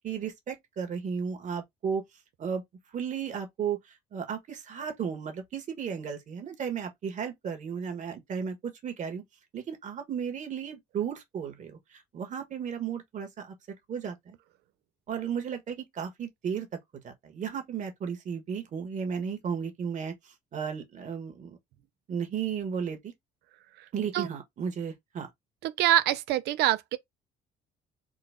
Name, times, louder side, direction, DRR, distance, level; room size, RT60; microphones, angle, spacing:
voice 1, 0.0-2.0 2.4-2.6 2.9-3.8 4.1-8.6 8.8-9.2 9.5-13.5 13.9-14.4 15.1-16.7 17.0-21.6 22.1-23.1 23.9-25.3, right 7 dB, 45° right, 1.3 m, -34 dB
voice 2, 25.6-27.0, right 14 dB, 80° right, 0.5 m, -25 dB
3.8 x 2.3 x 3.4 m
cardioid pair, 110°, 17 cm